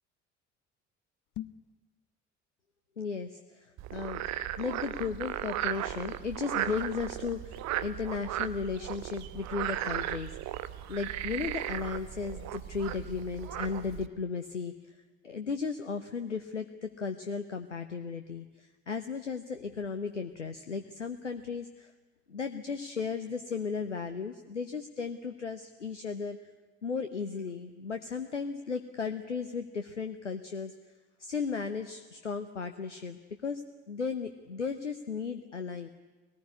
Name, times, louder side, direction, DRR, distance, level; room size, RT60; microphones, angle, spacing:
sound 1, 1.2-1.8, left 13 dB, 50° left, 0.9 m, -41 dB
voice 1, 3.0-4.2 4.6-10.6 10.9-15.0 15.2-21.9 22.3-26.4 26.8-30.7 31.2-33.6 33.9-35.9, left 5 dB, 85° left, 9 dB, 0.8 m, -35 dB
Frog, 3.8-14.1, right 13 dB, 50° right, 1.0 m, -36 dB
23.0 x 19.0 x 9.7 m, 1.3 s
figure-of-eight pair, 50°, 35 cm